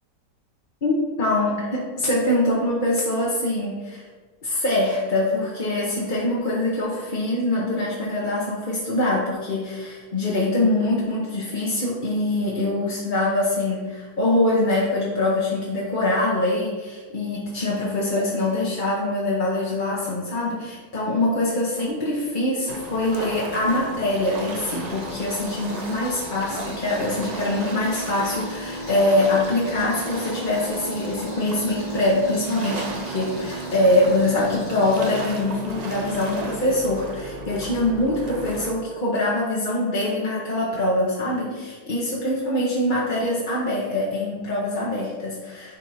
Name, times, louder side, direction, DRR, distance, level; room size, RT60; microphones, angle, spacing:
voice 1, 0.8-4.1 4.4-45.8, left 1 dB, 35° left, -5 dB, 1.0 m, -24 dB
sound 1, 22.7-38.7, right 2 dB, 40° right, 0.6 m, -34 dB
Rattle, 24.8-35.4, left 1 dB, 80° left, 3.1 m, -46 dB
10.5 x 3.6 x 4.2 m, 1.4 s
omnidirectional pair, 1.8 m